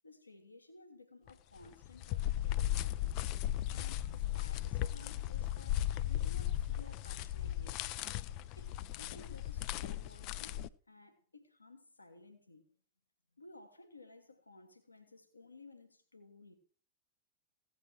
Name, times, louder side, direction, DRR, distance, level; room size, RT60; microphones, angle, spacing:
voice 1, 0.0-3.2 3.7-8.0 8.5-10.5 10.9-12.7 13.4-16.6, left 2 dB, 80° left, 1.6 m, -57 dB
sound 1, 1.3-1.4 1.6-10.7, left 13 dB, 40° left, 0.5 m, -36 dB
16.0 x 8.0 x 4.5 m
figure-of-eight pair, 90°, 0 cm